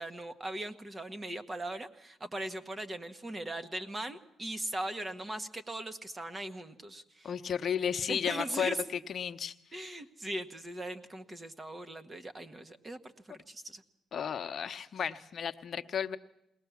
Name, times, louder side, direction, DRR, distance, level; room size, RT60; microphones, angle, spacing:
voice 1, 0.0-7.3 8.1-8.8 9.7-13.8, right 1 dB, 25° right, 9 dB, 1.5 m, -39 dB
voice 2, 7.2-8.7 9.1-9.5 14.1-16.2, left 8 dB, 55° left, 9 dB, 0.9 m, -33 dB
21.5 x 18.5 x 7.2 m, 0.84 s
cardioid pair, 90°, 0 cm